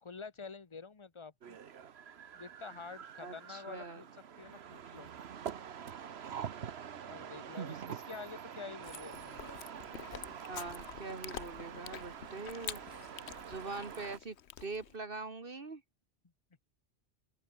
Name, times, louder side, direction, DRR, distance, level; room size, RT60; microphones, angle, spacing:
voice 1, 0.0-1.6 2.3-4.0 4.4-5.1 7.1-9.4, left 5 dB, 30° left, 1.0 m, -48 dB
sound 1, 1.4-14.2, right 8 dB, 75° right, 1.2 m, -46 dB
voice 2, 3.2-4.0 10.5-12.8 13.5-14.4 14.6-15.8, right 3 dB, 55° right, 2.0 m, -43 dB
Chewing mastication, 8.8-15.0, left 9 dB, 80° left, 1.1 m, -48 dB
open air
omnidirectional pair, 1.1 m